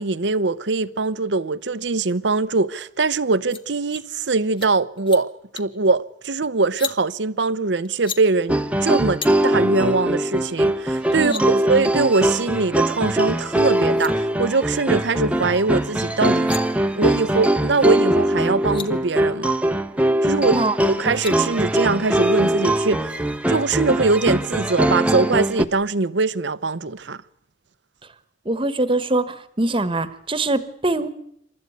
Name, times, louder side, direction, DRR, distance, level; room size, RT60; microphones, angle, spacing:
voice 1, 0.0-16.5 16.9-19.6 20.2-23.1 23.5-27.2, right 3 dB, 70° right, 0.8 m, -22 dB
sound 1, 3.5-3.6 3.9-4.1 4.4-4.7 5.0-5.2 5.6-5.8 6.6-7.0 7.9-8.2 9.2-9.3 10.6-10.7 11.0-11.4 13.5-13.6 13.8-14.1 16.2-16.6 18.3-18.4 18.5-18.9 20.8-21.4, left 6 dB, 30° left, 1.2 m, -34 dB
sound 2, 8.5-25.6, right 1 dB, 5° right, 0.9 m, -21 dB
voice 2, 11.2-11.6 20.5-20.8 28.4-31.1, right 2 dB, 30° right, 1.4 m, -23 dB
28.5 x 13.0 x 9.5 m
head